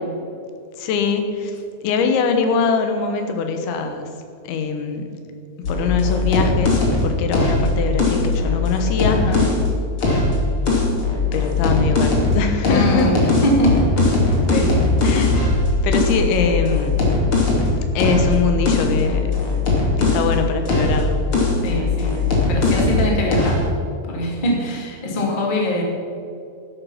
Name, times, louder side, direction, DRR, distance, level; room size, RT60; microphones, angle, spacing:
voice 1, 0.8-4.1 4.5-5.1 5.7-9.5 11.3-13.1 15.0-15.4 15.8-17.0 18.0-19.4 20.0-21.2, left 4 dB, 80° left, 6 dB, 3.5 m, -22 dB
sound 1, 5.6-9.6 10.0-12.4 12.6-20.3 20.6-23.0 23.3-23.6, left 3 dB, 35° left, 2.6 m, -19 dB
voice 2, 9.1-9.4 12.7-13.1 13.4-14.1 14.5-14.8 21.6-22.2 22.5-23.7 24.1-25.8, left 1 dB, 20° left, -1 dB, 1.5 m, -22 dB
12.5 x 11.5 x 5.7 m, 2.5 s
omnidirectional pair, 5.3 m